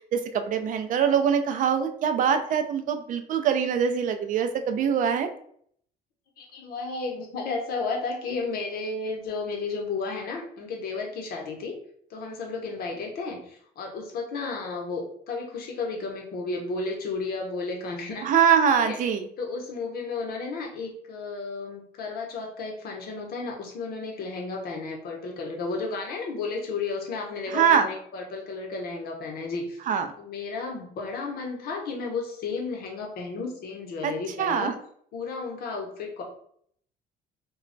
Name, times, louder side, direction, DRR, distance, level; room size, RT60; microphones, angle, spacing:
voice 1, 0.1-5.3 18.2-19.3 27.5-27.9 29.9-30.1 34.0-34.1 34.4-34.7, right 7 dB, 50° right, 7 dB, 0.4 m, -23 dB
voice 2, 6.4-11.8 12.1-18.3 18.8-19.0 19.4-29.8 30.2-34.7 35.1-36.2, left 4 dB, 65° left, 1 dB, 0.7 m, -33 dB
2.2 x 2.1 x 3.8 m, 0.64 s
cardioid pair, 110°, 17 cm